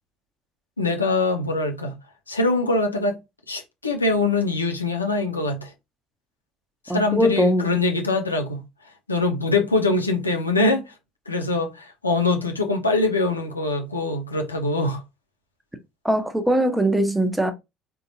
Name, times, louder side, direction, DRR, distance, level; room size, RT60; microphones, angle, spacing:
voice 1, 0.8-2.0 2.3-3.2 3.5-5.7 6.8-8.6 9.1-10.9 11.3-15.0, left 3 dB, 90° left, 0.5 m, -23 dB
voice 2, 6.9-7.7 16.0-17.5, right 1 dB, 5° right, 0.8 m, -21 dB
3.6 x 2.9 x 2.6 m
figure-of-eight pair, 60°, 0 cm